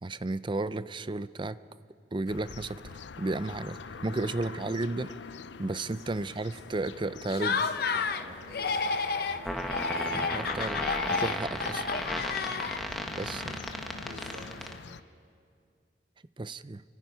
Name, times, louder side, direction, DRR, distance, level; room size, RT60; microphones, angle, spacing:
voice 1, 0.0-1.6 2.1-2.9 3.2-5.1 5.6-7.6 10.1-11.8 13.2-13.7 16.4-16.8, right 2 dB, 30° right, 14 dB, 0.5 m, -33 dB
sound 1, 2.3-15.0, left 5 dB, 85° left, 0.6 m, -45 dB
voice 2, 3.8-4.8 5.8-6.8 7.3-11.0 14.0-14.7, right 1 dB, 70° right, -1 dB, 7.2 m, -49 dB
Laughter, 7.3-8.2 8.5-9.4 9.7-13.0, left 4 dB, 60° left, 0.9 m, -31 dB
sound 2, 9.5-14.7, equal, ahead, 1.5 m, -34 dB
29.5 x 25.0 x 5.7 m, 2.3 s
head